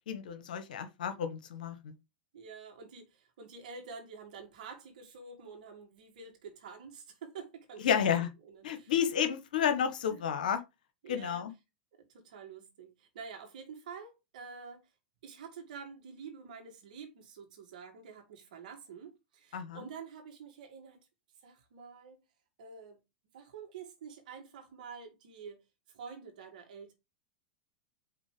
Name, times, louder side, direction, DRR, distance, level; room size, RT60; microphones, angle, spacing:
voice 1, 0.1-1.9 7.8-8.3 8.6-10.6 11.1-11.5 19.5-19.8, left 8 dB, 75° left, 1.1 m, -31 dB
voice 2, 2.3-7.9 8.4-8.9 10.1-10.2 11.0-11.4 12.0-14.9 15.2-21.0 21.4-22.2 22.6-23.0 23.3-26.9, right 5 dB, 70° right, 2.3 m, -48 dB
5.2 x 3.9 x 5.0 m
hypercardioid pair, 105°, 5 cm